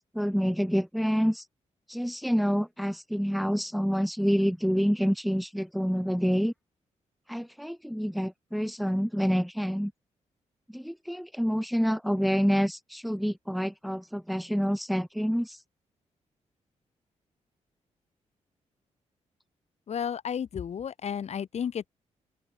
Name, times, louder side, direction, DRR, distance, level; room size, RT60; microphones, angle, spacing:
voice 1, 0.0-1.4 1.9-6.5 7.3-9.9 10.7-15.6, equal, ahead, 4.4 m, -27 dB
voice 2, 19.9-21.9, left 8 dB, 65° left, 3.3 m, -32 dB
open air
cardioid pair, 110°, 12 cm